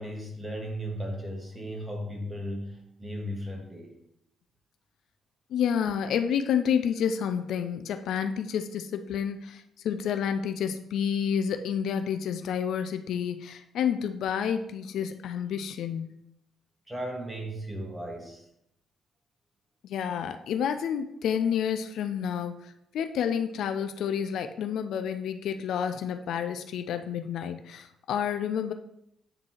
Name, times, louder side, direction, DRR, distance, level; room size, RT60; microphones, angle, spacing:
voice 1, 0.0-3.9 16.9-18.5, equal, 20° right, 0 dB, 1.8 m, -36 dB
voice 2, 5.5-16.2 19.8-28.7, left 8 dB, 65° left, 8 dB, 0.3 m, -29 dB
8.8 x 3.7 x 3.0 m, 0.78 s
hypercardioid pair, 45°, 0 cm